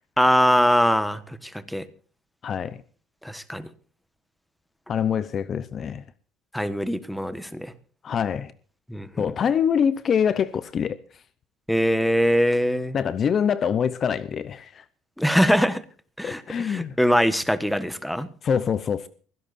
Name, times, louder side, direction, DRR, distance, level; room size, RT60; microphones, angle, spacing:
voice 1, 0.2-1.4 1.7-1.8 3.2-3.7 6.5-7.7 8.9-9.2 11.7-13.0 15.2-15.8 16.2-18.3, equal, ahead, 1.4 m, -22 dB
voice 2, 2.4-2.8 4.9-6.0 8.0-8.5 9.2-11.0 12.9-14.8 16.2-16.9 18.4-19.1, left 7 dB, 40° left, 0.7 m, -24 dB
23.5 x 16.5 x 2.6 m
cardioid pair, 115°, 0 cm